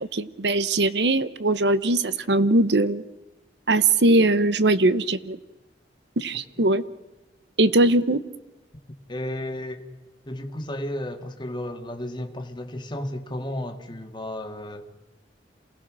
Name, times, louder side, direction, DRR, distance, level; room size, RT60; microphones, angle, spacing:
voice 1, 0.0-3.0 3.7-5.4 6.2-6.8 7.6-8.2, right 2 dB, 70° right, 1.0 m, -21 dB
voice 2, 9.1-9.9 10.3-14.9, left 1 dB, 25° left, 1.9 m, -33 dB
28.0 x 18.0 x 6.2 m
head